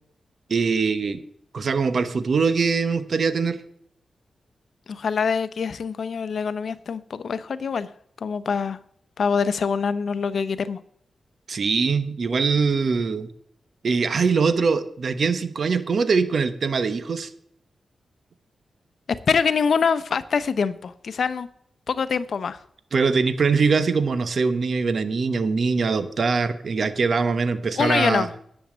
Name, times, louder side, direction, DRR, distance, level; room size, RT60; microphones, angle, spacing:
voice 1, 0.5-1.2 1.5-3.6 11.5-13.3 13.8-17.3 22.9-28.3, right 5 dB, 60° right, 11 dB, 1.0 m, -22 dB
voice 2, 4.9-7.9 8.2-8.8 9.2-10.8 19.1-21.5 21.9-22.6 27.8-28.3, left 6 dB, 70° left, 14 dB, 0.7 m, -24 dB
10.5 x 7.2 x 7.3 m, 0.68 s
cardioid pair, 85°, 0 cm